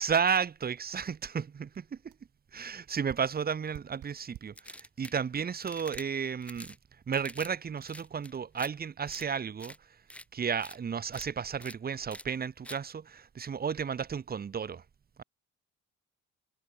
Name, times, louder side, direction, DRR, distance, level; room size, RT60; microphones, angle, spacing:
voice 1, 0.0-2.1 2.5-6.8 7.1-9.7 10.3-14.8, right 7 dB, 30° right, 0.8 m, -33 dB
sound 1, 1.3-1.4 1.7-1.8 2.1-2.3 3.1-4.6 5.4-5.5 5.9-6.2 6.5-6.6, right 14 dB, 80° right, 3.1 m, -50 dB
sound 2, 4.6-5.2 5.6-6.0 6.4-6.8 7.1-7.5 7.8-8.7 9.1-9.2 9.6-9.8 10.1-10.2 10.6-10.8 11.1-11.3 11.6-11.8 12.1-12.2 12.6-12.8, left 1 dB, 5° left, 2.6 m, -46 dB
cardioid pair, 90°, 30 cm